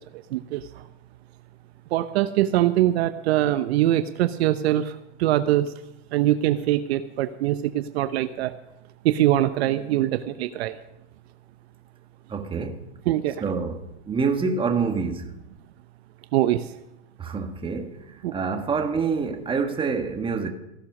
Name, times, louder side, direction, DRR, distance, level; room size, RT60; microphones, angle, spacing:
voice 1, 1.9-4.8 5.2-5.7 6.1-8.5 9.0-10.7 13.1-13.3 16.3-16.6 18.2-18.3, right 13 dB, 60° right, 0.8 m, -22 dB
voice 2, 12.3-12.8 13.4-15.3 17.2-20.5, right 5 dB, 15° right, 1.5 m, -27 dB
15.5 x 11.5 x 6.0 m
hypercardioid pair, 135°, 36 cm